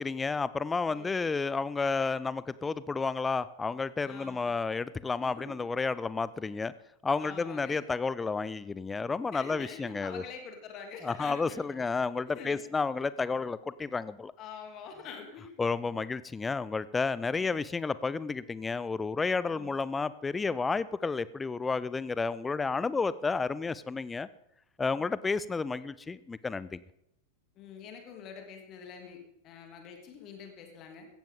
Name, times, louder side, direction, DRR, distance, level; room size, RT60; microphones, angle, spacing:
voice 1, 0.0-6.7 7.0-10.2 11.0-14.3 15.6-24.3 24.8-26.8, left 4 dB, 15° left, 17 dB, 0.5 m, -31 dB
voice 2, 0.8-1.3 4.0-4.5 5.2-5.6 7.2-7.8 9.3-11.8 12.3-12.7 14.4-16.0 19.5-19.7 27.6-31.1, left 6 dB, 35° left, 3 dB, 2.6 m, -46 dB
16.5 x 14.5 x 3.7 m, 0.83 s
figure-of-eight pair, 90°, 0 cm